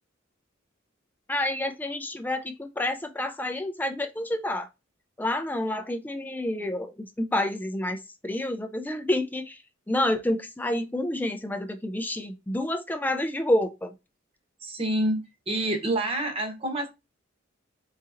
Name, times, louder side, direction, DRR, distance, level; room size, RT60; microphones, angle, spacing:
voice 1, 1.3-4.7 5.2-9.6 9.9-13.9, left 1 dB, 10° left, 0.3 m, -29 dB
voice 2, 14.6-16.9, right 1 dB, 30° right, 1.0 m, -27 dB
4.1 x 3.7 x 2.5 m
head